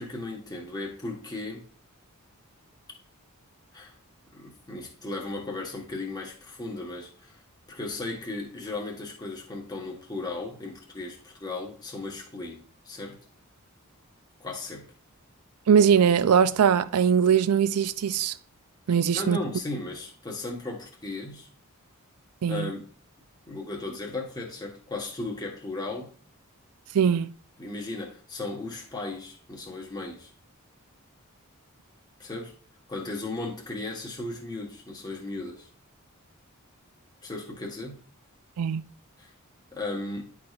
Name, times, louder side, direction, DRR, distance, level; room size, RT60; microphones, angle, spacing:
voice 1, 0.0-1.7 3.7-3.9 4.3-7.4 7.7-13.2 14.4-14.9 19.1-21.5 22.5-22.8 23.5-26.1 27.6-30.3 32.2-32.5 32.9-35.7 37.2-38.0 39.2-39.3 39.7-40.3, left 2 dB, 20° left, 1.3 m, -36 dB
voice 2, 15.7-18.3 18.9-19.4 22.4-22.7 26.9-27.3 38.6-38.8, right 7 dB, 85° right, 0.4 m, -21 dB
10.0 x 4.8 x 2.4 m
head